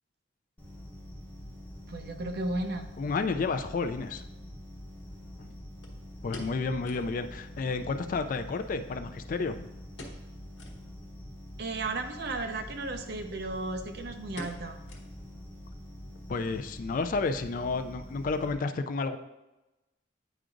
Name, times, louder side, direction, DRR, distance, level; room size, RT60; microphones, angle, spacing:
sound 1, 0.6-18.5, equal, 10° left, 2.0 m, -45 dB
voice 1, 1.9-2.9 11.6-14.8, right 2 dB, 60° right, 6 dB, 0.6 m, -34 dB
voice 2, 3.0-4.2 5.4-5.5 6.2-9.7 16.3-19.2, left 4 dB, 45° left, 9 dB, 0.3 m, -31 dB
sound 2, 5.8-7.2 7.5-7.6 7.9-8.0 8.6-9.5 9.9-10.3 10.5-10.8 11.3-11.4 12.4-12.7 13.0-13.2 13.5-13.8 14.4-15.4 15.7-15.8 16.4-16.7 17.0-17.1, left 2 dB, 70° left, 1.1 m, -47 dB
9.0 x 4.8 x 2.5 m, 1.0 s
head